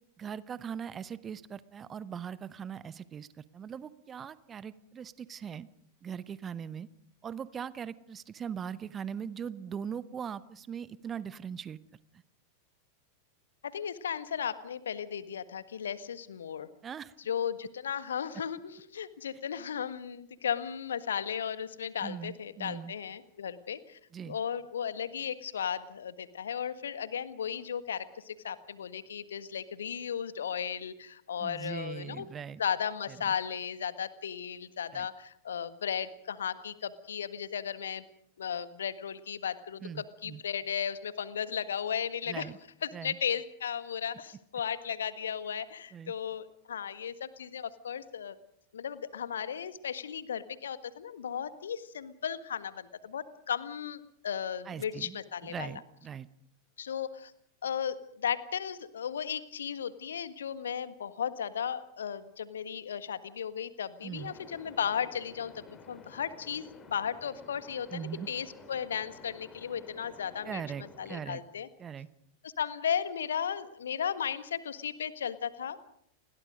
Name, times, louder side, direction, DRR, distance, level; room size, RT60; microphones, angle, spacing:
voice 1, 0.2-5.7 6.0-6.9 7.2-11.8 12.1-12.2 16.8-17.1 22.0-22.9 24.1-24.4 31.4-32.6 33.1-33.3 34.9-35.1 39.8-40.4 42.3-42.6 42.9-43.2 45.9-46.1 54.6-55.2 55.5-56.3 64.0-64.3 67.9-68.3 70.5-71.4 71.8-72.1, right 7 dB, 25° right, 17 dB, 0.9 m, -40 dB
voice 2, 13.6-16.7 17.2-24.0 24.2-32.3 32.6-38.0 38.4-42.5 42.8-48.3 48.7-55.7 56.8-57.3 57.6-70.6 71.0-71.7 72.4-75.9, left 8 dB, 65° left, 13 dB, 1.6 m, -35 dB
sound 1, 64.1-71.4, left 3 dB, 20° left, 4.5 m, -53 dB
30.0 x 21.5 x 5.2 m, 0.69 s
figure-of-eight pair, 90°, 0 cm